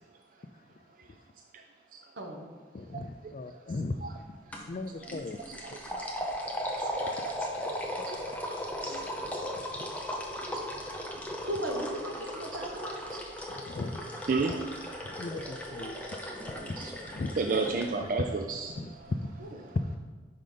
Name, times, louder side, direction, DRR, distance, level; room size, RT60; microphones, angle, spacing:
voice 1, 2.2-2.5 11.4-13.0 15.8-15.9 19.4-19.5, right 1 dB, 80° right, 1 dB, 1.2 m, -36 dB
voice 2, 2.7-4.4 4.7-5.4 7.1-7.2 9.6-9.9 13.5-14.3 15.0-15.9 16.4-17.4 18.8-19.3 19.7-20.0, left 2 dB, 40° left, 10 dB, 0.3 m, -37 dB
sound 1, 4.5-4.7 5.0-17.9, equal, 10° left, 0.7 m, -37 dB
voice 3, 5.9-7.3 8.0-8.5 8.8-9.6 10.5-10.6 13.1-13.2 14.3-14.6 16.6-16.9 17.4-18.8, right 4 dB, 45° right, 3 dB, 0.4 m, -33 dB
5.8 x 5.2 x 5.0 m, 1.4 s
head